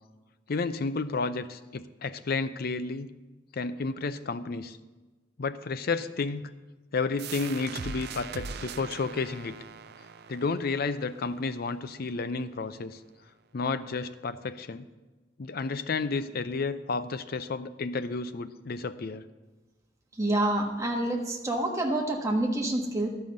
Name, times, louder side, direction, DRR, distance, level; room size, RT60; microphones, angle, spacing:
voice 1, 0.5-3.1 3.5-4.8 5.4-6.5 6.9-9.6 10.3-13.0 13.5-14.9 15.4-19.3, left 4 dB, 55° left, 12 dB, 0.5 m, -31 dB
sound 1, 7.2-12.6, right 5 dB, 60° right, 0.5 m, -41 dB
voice 2, 20.2-23.1, right 1 dB, 15° right, 0 dB, 1.4 m, -27 dB
11.5 x 5.6 x 7.8 m, 1.2 s
head